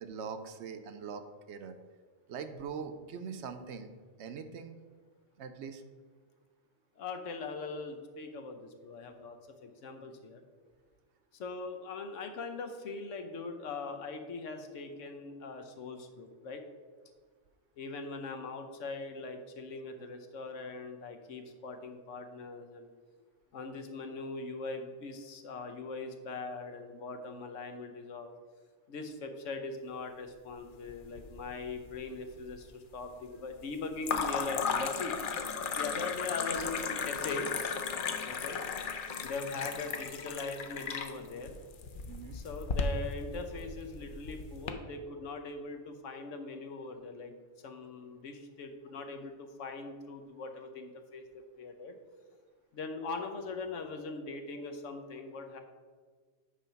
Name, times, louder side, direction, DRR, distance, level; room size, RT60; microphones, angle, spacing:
voice 1, 0.0-1.8 2.3-3.9 4.2-4.8 5.4-5.8 42.1-42.4, right 6 dB, 70° right, 9 dB, 0.8 m, -42 dB
voice 2, 7.0-10.4 11.3-16.6 17.8-22.9 23.5-28.3 28.9-35.1 35.8-37.5 38.2-38.6 39.2-41.6 42.3-47.4 47.6-52.0 52.7-55.6, left 3 dB, 80° left, 6 dB, 1.1 m, -41 dB
sound 1, 30.9-31.6 31.9-32.6 34.0-44.7, left 5 dB, 55° left, 0.6 m, -35 dB
8.7 x 3.4 x 5.7 m, 1.5 s
omnidirectional pair, 1.3 m